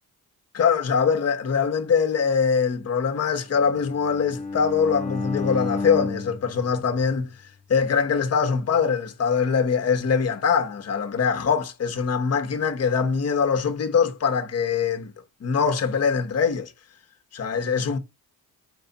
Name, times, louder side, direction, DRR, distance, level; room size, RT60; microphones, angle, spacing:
voice 1, 0.5-7.3 7.7-15.1 15.4-16.7 17.3-18.0, left 6 dB, 40° left, 1.1 m, -23 dB
Bowed string instrument, 3.5-7.7, left 3 dB, 20° left, 1.1 m, -32 dB
5.5 x 4.7 x 4.0 m
cardioid pair, 120°, 37 cm